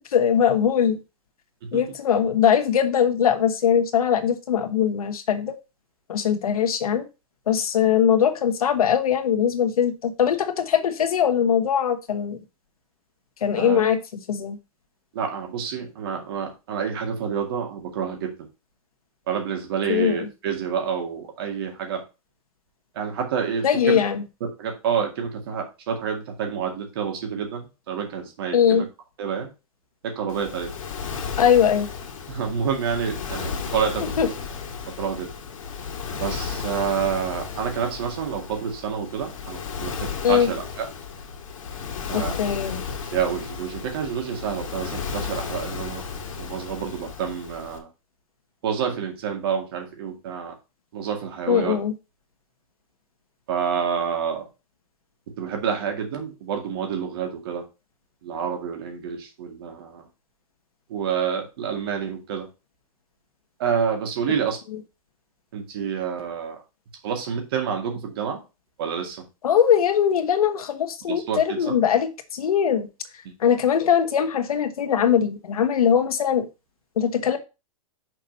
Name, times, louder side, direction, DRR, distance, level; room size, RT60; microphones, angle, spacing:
voice 1, 0.1-1.0 1.7-5.5 6.1-7.1 7.5-12.4 13.4-14.0 14.3-14.6 19.9-20.3 23.6-24.2 28.5-28.8 31.4-31.9 34.2-34.3 40.2-40.5 42.1-42.8 51.5-51.9 69.4-72.9 73.4-76.5 77.0-77.4, left 8 dB, 90° left, 7 dB, 1.3 m, -21 dB
voice 2, 13.6-13.9 15.1-18.5 19.3-22.0 22.9-24.0 24.4-28.9 29.2-29.5 30.0-30.7 32.3-34.4 35.0-35.3 36.1-40.9 42.1-42.3 43.1-46.0 46.4-47.9 48.6-50.5 50.9-51.8 53.5-54.5 55.4-57.6 58.2-60.1 60.9-62.5 63.6-64.6 65.5-66.6 67.0-68.4 68.8-69.2 71.1-71.8 73.2-73.3, right 7 dB, 40° right, 3 dB, 2.1 m, -28 dB
Waves surf, 30.3-47.8, left 5 dB, 65° left, 2.0 m, -34 dB
6.3 x 4.3 x 5.3 m, 0.28 s
hypercardioid pair, 175°, 18 cm